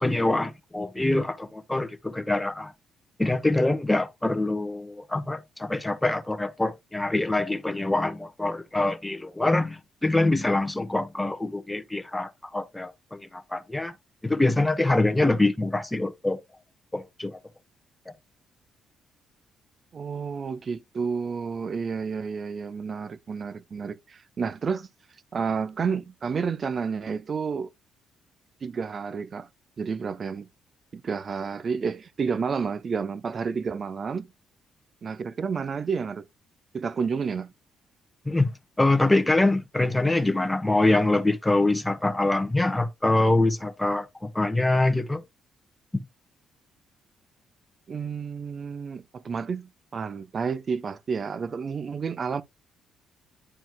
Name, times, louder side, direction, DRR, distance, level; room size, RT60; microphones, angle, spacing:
voice 1, 0.0-2.7 3.2-13.9 14.2-16.4 16.9-17.4 38.2-45.2 45.9-46.1, left 2 dB, 10° left, 1.2 m, -24 dB
voice 2, 19.9-24.9 25.3-27.7 28.6-29.5 29.8-30.5 30.9-34.3 35.0-36.3 36.7-37.5 47.9-52.4, right 5 dB, 45° right, 0.7 m, -30 dB
11.0 x 4.3 x 2.2 m
cardioid pair, 90°, 0 cm